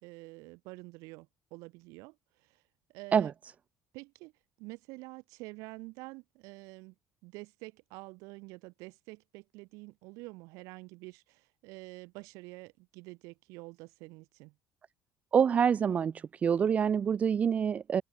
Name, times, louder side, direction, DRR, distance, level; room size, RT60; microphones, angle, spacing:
voice 1, 0.0-2.6 2.9-3.3 3.9-4.3 4.6-6.9 7.2-14.5, right 25 dB, 90° right, 5.4 m, -48 dB
voice 2, 15.3-16.1 16.4-18.0, right 7 dB, 25° right, 0.6 m, -26 dB
open air
cardioid pair, 165°, 5 cm